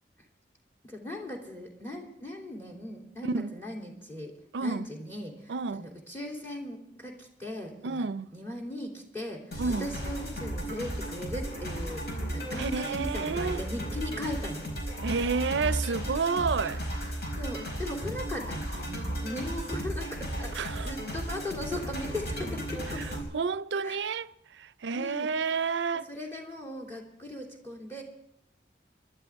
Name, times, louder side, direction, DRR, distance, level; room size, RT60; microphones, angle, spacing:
voice 1, 0.8-12.1 12.3-14.8 17.4-23.0 23.8-24.0 24.9-25.3 26.0-28.0, left 1 dB, 15° left, 3.1 m, -38 dB
voice 2, 4.5-4.9 5.5-5.9 7.8-8.3 9.6-9.9 12.6-13.6 15.0-16.8 20.6-20.9 23.0-23.1 23.3-26.1, right 5 dB, 80° right, 0.5 m, -30 dB
sound 1, 9.5-23.2, right 1 dB, 65° left, 5.0 m, -35 dB
23.0 x 12.0 x 3.6 m
head